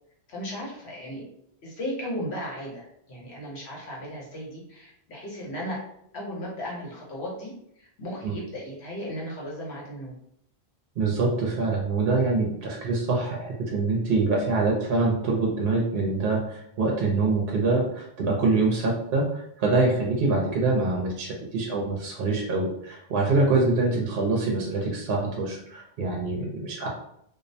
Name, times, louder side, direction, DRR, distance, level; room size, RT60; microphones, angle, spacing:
voice 1, 0.3-1.2 1.6-5.8 6.1-10.1, equal, 80° left, -4 dB, 1.1 m, -36 dB
voice 2, 11.0-26.9, right 3 dB, 65° right, -1 dB, 0.7 m, -25 dB
2.5 x 2.0 x 2.6 m, 0.72 s
omnidirectional pair, 1.1 m